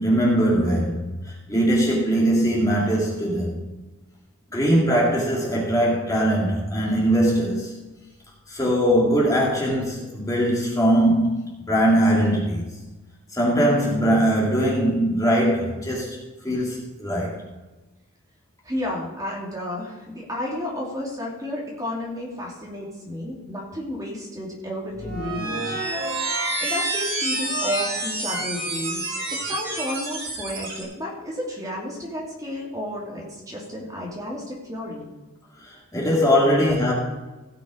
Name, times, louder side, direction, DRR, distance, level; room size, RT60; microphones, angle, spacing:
voice 1, 0.0-3.6 4.5-7.7 8.5-12.6 13.3-16.2 16.4-17.4 35.6-36.9, equal, 15° left, -4 dB, 2.2 m, -21 dB
voice 2, 18.6-25.7 26.3-35.0, left 1 dB, 15° right, -3 dB, 2.4 m, -32 dB
sound 1, 24.9-30.8, right 2 dB, 55° right, 4.0 m, -28 dB
16.5 x 6.0 x 5.0 m, 1.1 s
head